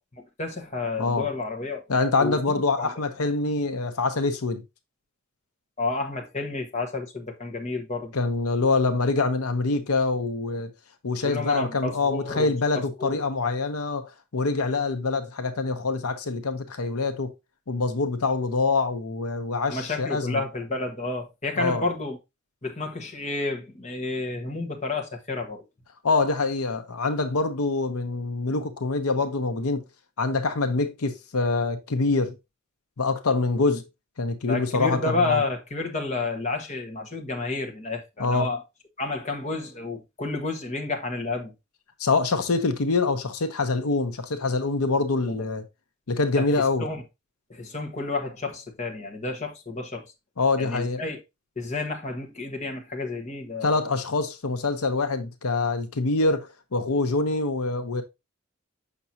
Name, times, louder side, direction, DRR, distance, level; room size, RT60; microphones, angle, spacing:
voice 1, 0.4-1.9 2.2-2.4 2.8-2.9 5.8-8.1 11.2-12.5 13.0-13.2 19.7-22.2 22.6-25.6 34.5-38.6 39.0-41.5 45.3-45.4 46.4-46.5 46.8-47.0 47.5-50.1 50.6-51.2 51.6-53.8, left 3 dB, 30° left, 1.3 m, -30 dB
voice 2, 1.9-4.6 8.1-10.7 11.0-17.3 17.7-20.4 21.6-21.8 26.0-29.8 30.2-32.4 33.0-33.8 34.2-35.4 38.2-38.5 42.0-45.6 46.1-46.9 50.4-51.0 53.6-58.0, left 3 dB, 85° left, 0.8 m, -25 dB
6.8 x 6.0 x 2.7 m
head